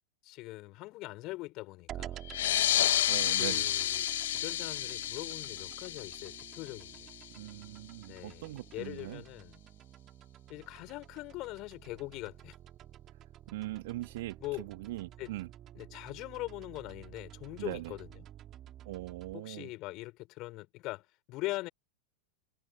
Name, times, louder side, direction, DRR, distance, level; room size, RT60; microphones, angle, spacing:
voice 1, 0.2-2.2 3.4-7.1 8.1-9.6 10.5-12.6 14.4-14.6 15.2-15.3 15.8-18.1 19.3-21.7, left 20 dB, 40° left, 6.1 m, -42 dB
sound 1, 1.9-19.3, right 12 dB, 30° right, 3.6 m, -51 dB
sound 2, 2.2-7.4, left 13 dB, 60° left, 0.6 m, -31 dB
voice 2, 3.1-3.7 7.4-9.2 13.5-15.5 17.6-17.9 18.8-19.7, right 17 dB, 55° right, 2.3 m, -41 dB
figure-of-eight pair, 90°, 0 cm